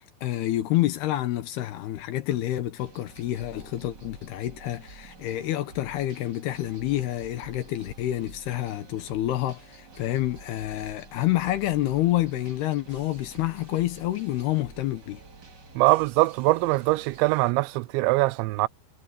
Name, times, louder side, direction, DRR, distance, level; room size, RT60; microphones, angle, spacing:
voice 1, 0.2-15.2, left 14 dB, 70° left, 2.8 m, -28 dB
sound 1, 2.8-17.5, right 4 dB, 30° right, 2.2 m, -49 dB
voice 2, 15.8-18.7, right 22 dB, 90° right, 2.9 m, -22 dB
omnidirectional pair, 5.1 m